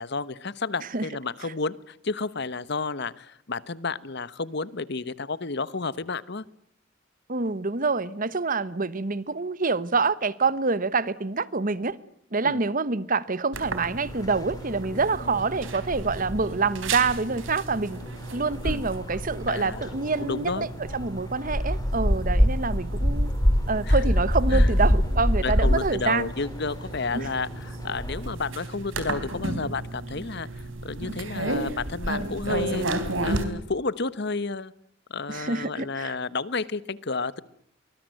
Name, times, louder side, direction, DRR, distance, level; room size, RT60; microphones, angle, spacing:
voice 1, 0.0-6.4 12.4-12.6 18.6-18.9 19.5-19.9 20.2-20.7 23.8-24.0 24.5-24.7 25.4-30.5 30.8-32.9 33.2-34.7 35.1-37.4, left 4 dB, 60° left, 1.1 m, -31 dB
voice 2, 7.3-12.0 12.3-18.0 18.3-23.3 23.7-26.3 27.1-27.3 35.3-36.2, right 4 dB, 45° right, 1.1 m, -26 dB
sound 1, 13.5-33.4, right 2 dB, 85° right, 3.8 m, -34 dB
sound 2, 14.1-28.3, equal, 20° left, 3.0 m, -27 dB
24.0 x 20.5 x 9.2 m
head